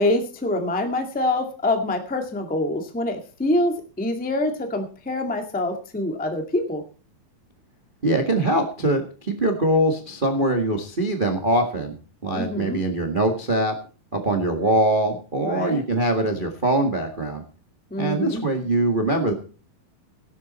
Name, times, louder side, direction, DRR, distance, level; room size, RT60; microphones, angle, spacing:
voice 1, 0.0-6.8 12.3-12.8 15.4-15.8 17.9-18.4, left 1 dB, 10° left, 4 dB, 0.5 m, -25 dB
voice 2, 8.0-12.0 12.2-13.7 14.1-17.4 18.0-19.3, right 1 dB, 55° right, 4 dB, 0.5 m, -22 dB
16.5 x 12.0 x 4.3 m, 0.38 s
omnidirectional pair, 4.4 m